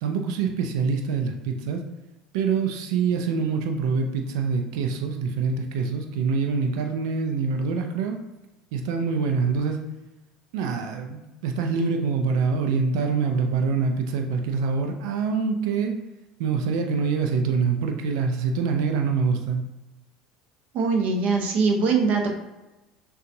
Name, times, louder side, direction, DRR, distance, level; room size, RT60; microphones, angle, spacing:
voice 1, 0.0-1.8 2.3-8.2 8.7-9.8 10.5-15.9 16.4-19.6, right 5 dB, 65° right, 4 dB, 0.5 m, -25 dB
voice 2, 20.7-22.3, right 4 dB, 50° right, 2 dB, 0.9 m, -22 dB
6.3 x 2.4 x 2.7 m, 1.0 s
figure-of-eight pair, 70°, 3 cm